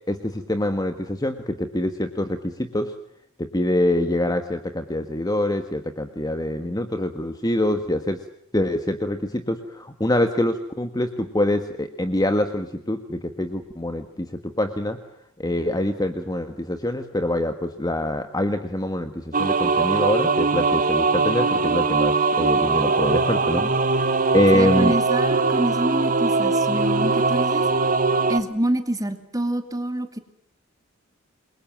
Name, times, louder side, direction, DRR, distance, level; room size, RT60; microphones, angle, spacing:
voice 1, 0.1-3.0 3.4-8.2 8.5-15.0 15.4-24.0 24.3-24.9, left 1 dB, 20° left, 8 dB, 1.6 m, -25 dB
sound 1, 19.3-28.4, right 4 dB, 40° right, 1.9 m, -21 dB
voice 2, 24.5-27.6 28.3-30.2, right 1 dB, 15° right, 8 dB, 2.5 m, -27 dB
28.5 x 23.0 x 7.4 m, 0.73 s
head